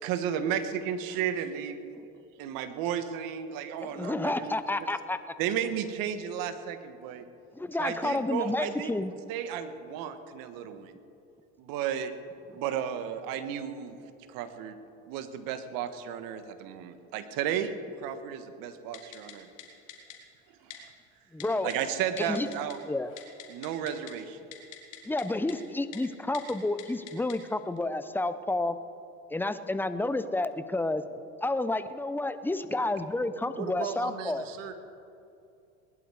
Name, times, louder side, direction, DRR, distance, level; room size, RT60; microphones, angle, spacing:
voice 1, 0.0-1.8 2.4-4.5 5.4-7.3 7.8-8.9 9.3-10.9 11.6-12.1 12.5-14.0 14.3-14.8 15.0-19.5 20.6-20.9 21.6-22.8 23.5-24.4, right 9 dB, 65° right, 10 dB, 1.4 m, -33 dB
voice 2, 4.0-5.2 7.5-9.1 21.3-21.7 22.2-22.5 22.9-23.1 25.1-28.8 29.3-31.0 31.4-34.4, left 2 dB, 5° left, 12 dB, 0.7 m, -30 dB
Typing, 18.9-19.3 19.6-19.7 19.9-20.2 20.7-20.8 21.4-21.8 22.2-22.7 23.0-24.1 24.5-25.2 25.5-25.6 25.9-26.0 26.3-26.5 26.8-27.3 27.8-27.9, left 13 dB, 85° left, 2.4 m, -44 dB
voice 3, 33.5-34.7, right 8 dB, 90° right, 8 dB, 1.5 m, -37 dB
19.5 x 11.0 x 5.0 m, 2.6 s
supercardioid pair, 90°, 37 cm